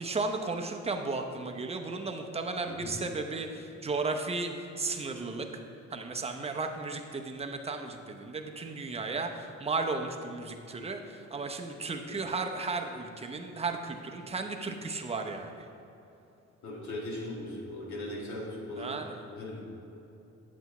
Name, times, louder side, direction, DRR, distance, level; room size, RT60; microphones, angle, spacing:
voice 1, 0.0-5.5 5.9-15.7 18.8-19.2, right 3 dB, 20° right, 4 dB, 0.7 m, -34 dB
voice 2, 16.6-19.0 19.4-19.6, left 1 dB, 70° left, -2 dB, 1.7 m, -39 dB
8.3 x 7.9 x 3.1 m, 3.0 s
cardioid pair, 90°, 30 cm